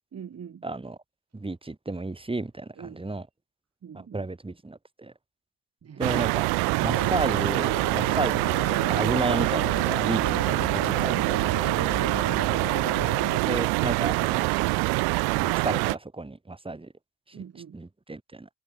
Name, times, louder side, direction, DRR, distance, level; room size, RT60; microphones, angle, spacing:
voice 1, 0.1-0.6 2.8-3.0 3.8-4.3 11.7-12.5 17.3-17.8, right 7 dB, 40° right, 4.9 m, -43 dB
voice 2, 0.6-1.0 1.3-3.3 3.9-5.1 6.0-6.5 6.8-11.3 13.4-14.5 15.3-16.9 17.7-18.5, right 2 dB, 15° right, 7.3 m, -32 dB
sound 1, 6.0-16.0, right 28 dB, 80° right, 1.0 m, -25 dB
sound 2, 6.8-13.4, left 7 dB, 40° left, 3.3 m, -37 dB
supercardioid pair, 85°, 37 cm